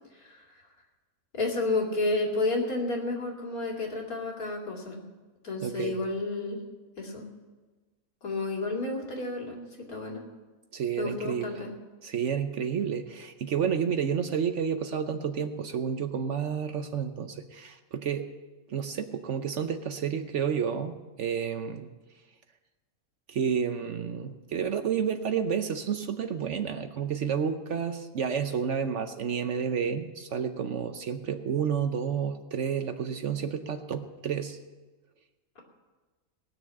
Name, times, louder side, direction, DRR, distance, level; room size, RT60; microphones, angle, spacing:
voice 1, 1.3-5.0 5.4-6.6 7.0-7.3 8.2-10.2 11.0-11.7, left 2 dB, 80° left, -1 dB, 2.9 m, -31 dB
voice 2, 5.6-6.0 10.7-11.5 12.0-18.3 18.7-21.9 23.3-34.6, right 7 dB, 60° right, 8 dB, 1.0 m, -30 dB
18.5 x 6.6 x 8.5 m, 1.3 s
omnidirectional pair, 1.5 m